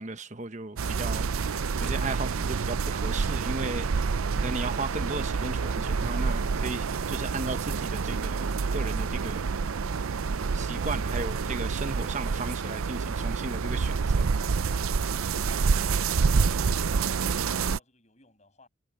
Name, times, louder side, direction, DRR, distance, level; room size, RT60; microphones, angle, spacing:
voice 1, 0.0-3.9 4.4-9.5 10.0-10.1 10.5-14.4, right 3 dB, 35° right, 1.1 m, -36 dB
sound 1, 0.8-17.8, right 5 dB, 85° right, 0.5 m, -28 dB
voice 2, 15.0-18.7, left 2 dB, 35° left, 7.5 m, -60 dB
head